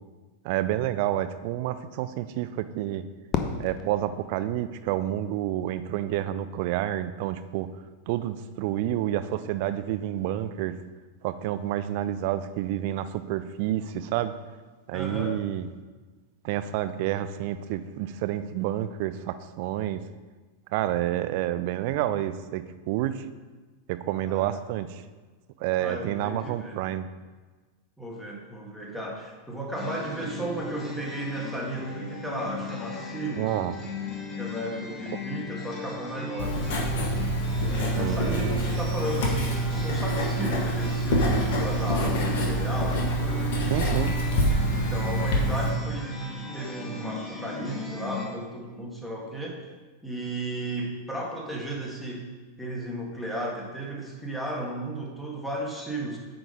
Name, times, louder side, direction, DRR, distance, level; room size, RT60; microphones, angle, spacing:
voice 1, 0.4-3.0 3.6-7.7 8.1-10.7 11.2-14.3 14.9-15.7 16.4-20.0 20.7-23.3 23.9-25.0 25.6-27.1 33.4-33.8 35.1-35.2 37.9-38.6 43.7-44.2, right 12 dB, 45° right, 13 dB, 0.4 m, -29 dB
Fireworks, 3.3-5.5, left 6 dB, 30° left, 0.7 m, -34 dB
voice 2, 14.9-15.4 24.2-24.6 25.8-26.8 28.0-33.5 34.4-36.6 37.6-43.5 44.7-49.6 50.0-52.3 52.6-56.2, right 1 dB, ahead, -2 dB, 1.7 m, -34 dB
sound 1, 29.7-48.3, left 3 dB, 15° left, 1.8 m, -37 dB
Writing, 36.4-45.7, right 1 dB, 50° left, 1.6 m, -26 dB
9.0 x 3.9 x 5.1 m, 1.3 s
figure-of-eight pair, 90°, 0 cm